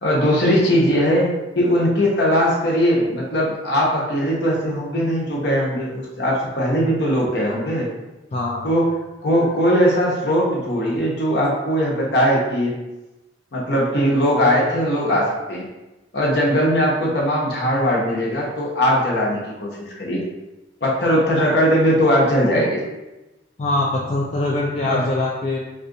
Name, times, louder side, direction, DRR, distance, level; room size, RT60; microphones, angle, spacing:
voice 1, 0.0-7.9 8.6-8.9 9.2-12.7 13.5-15.6 16.1-20.2 20.8-22.8 24.9-25.0, equal, 60° left, -4 dB, 0.9 m, -19 dB
voice 2, 8.3-8.7 23.6-25.6, left 2 dB, 35° left, -5 dB, 0.3 m, -23 dB
2.7 x 2.4 x 3.7 m, 1.0 s
head